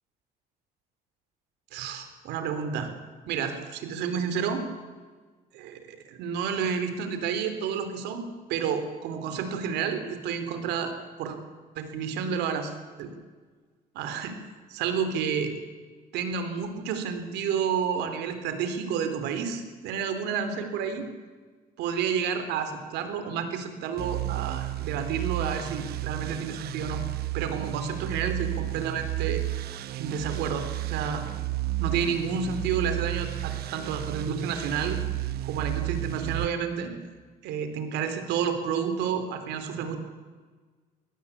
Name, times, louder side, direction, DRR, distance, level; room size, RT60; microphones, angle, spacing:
voice 1, 1.7-2.9 3.3-4.7 5.5-10.9 11.2-11.4 11.8-13.1 13.9-14.4 14.7-15.5 16.1-21.1 21.8-27.0 27.3-29.4 29.9-31.2 31.8-35.0 35.4-36.9 37.4-40.0, right 7 dB, 90° right, 8 dB, 3.6 m, -30 dB
sound 1, 24.0-36.5, right 15 dB, 70° right, 1.1 m, -32 dB
22.0 x 18.5 x 8.5 m, 1.4 s
cardioid pair, 110°, 17 cm